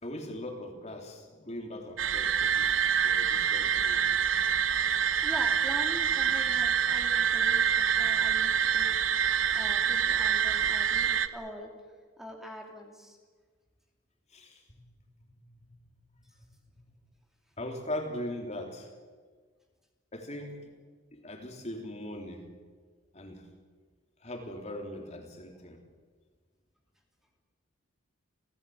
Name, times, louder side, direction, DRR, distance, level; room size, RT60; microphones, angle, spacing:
voice 1, 0.0-4.1 14.3-14.8 15.2-15.7 16.2-16.3 17.6-18.9 20.1-20.7 21.1-22.5 23.1-23.5 24.2-25.9, left 1 dB, 35° left, 3 dB, 3.4 m, -40 dB
sound 1, 2.0-11.3, right 8 dB, 80° right, 1.1 m, -26 dB
voice 2, 5.2-9.3 9.5-11.7 12.2-13.2, equal, ahead, 1 dB, 2.7 m, -43 dB
29.5 x 16.0 x 8.6 m, 1.5 s
head